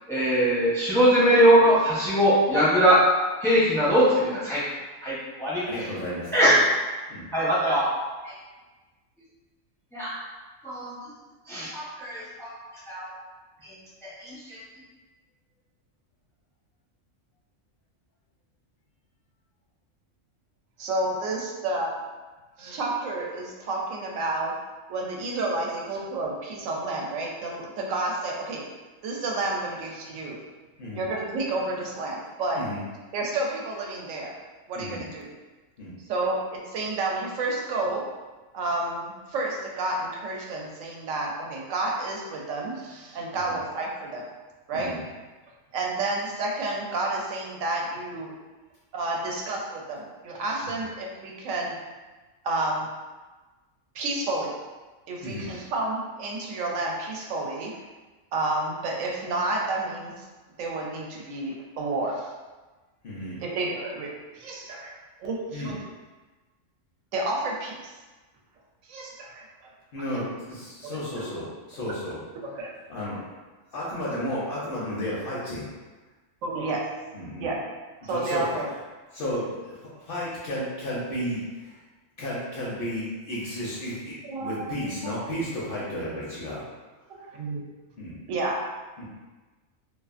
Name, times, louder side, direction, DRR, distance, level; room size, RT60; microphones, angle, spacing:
voice 1, 0.1-3.0 3.4-4.6 5.0-5.6 6.3-6.5 7.3-7.8 8.2-8.3 9.9-10.1 10.6-10.9 11.5-12.5 12.9-13.1 13.6-13.7 14.0-14.6, equal, 5° left, -9 dB, 0.4 m, -21 dB
voice 2, 5.6-6.5 7.1-7.3 30.8-31.1 32.6-32.8 34.7-35.0 35.8-35.9 43.5-43.6 44.7-45.0 50.6-50.7 55.2-55.5 63.0-63.4 65.5-65.7 69.9-72.2 72.9-73.2 73.7-75.7 77.1-77.5 78.0-78.6 79.1-81.8 82.2-86.6 88.0-88.2 89.0-89.1, equal, 55° left, -7 dB, 0.7 m, -33 dB
voice 3, 20.8-21.9 22.6-24.5 24.9-28.6 29.0-30.4 30.9-32.6 33.1-34.3 34.7-35.3 36.1-38.0 38.5-44.2 44.7-44.9 45.7-48.3 48.9-51.7 52.4-52.9 53.9-54.5 55.1-57.7 58.3-60.2 60.6-62.3 63.4-64.1 64.3-64.9 65.2-65.8 67.1-67.8 68.9-69.7 70.1-70.2 70.8-71.3 72.4-72.7 76.4-76.8 77.4-77.6 78.0-78.7 84.3-84.7 85.0-85.1 87.2-87.6 88.3-88.6, right 2 dB, 80° right, -2 dB, 1.0 m, -30 dB
2.6 x 2.3 x 2.4 m, 1.2 s
omnidirectional pair, 1.3 m